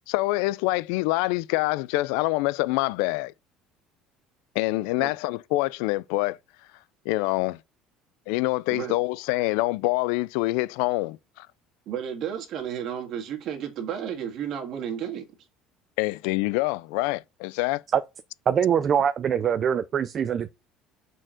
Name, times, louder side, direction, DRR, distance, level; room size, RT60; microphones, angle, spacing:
voice 1, 0.1-3.3 4.6-6.4 7.1-7.6 8.3-11.5 16.0-17.8, left 20 dB, 90° left, 0.4 m, -26 dB
voice 2, 11.9-15.3, right 9 dB, 50° right, 1.9 m, -32 dB
voice 3, 18.5-20.5, right 8 dB, 35° right, 0.5 m, -23 dB
6.2 x 4.5 x 6.4 m
cardioid pair, 155°, 0 cm